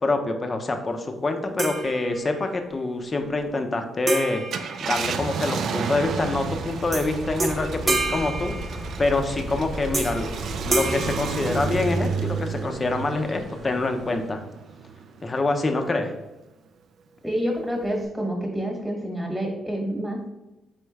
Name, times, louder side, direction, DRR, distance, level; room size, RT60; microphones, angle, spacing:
voice 1, 0.0-4.4 4.8-10.3 10.6-14.4 15.2-16.1, left 2 dB, 30° left, 5 dB, 0.6 m, -26 dB
sound 1, 1.6-2.6 4.1-5.6 6.9-7.1 7.4-9.2 9.9-10.3 10.7-12.1, right 2 dB, 35° right, 0.8 m, -29 dB
Car, 4.4-15.2 15.7-15.8 17.8-18.1, right 5 dB, 65° right, 0.4 m, -32 dB
sound 2, 6.0-14.3, equal, 10° left, 0.9 m, -37 dB
voice 2, 17.2-20.4, equal, 5° right, -1 dB, 1.2 m, -28 dB
4.3 x 3.5 x 3.2 m, 1.0 s
cardioid pair, 90°, 0 cm